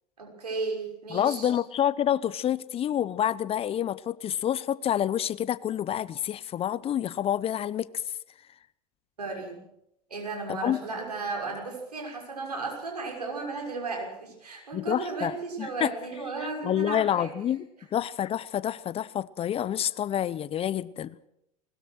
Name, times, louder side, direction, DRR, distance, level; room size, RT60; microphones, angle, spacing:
voice 1, 0.2-1.5 9.2-9.6 10.1-17.3, right 3 dB, 85° right, 2 dB, 6.0 m, -34 dB
voice 2, 1.1-7.9 10.5-10.8 14.7-15.9 16.4-17.7 17.9-21.2, left 10 dB, 30° left, 20 dB, 0.7 m, -28 dB
21.0 x 19.5 x 6.3 m, 0.80 s
figure-of-eight pair, 80°, 20 cm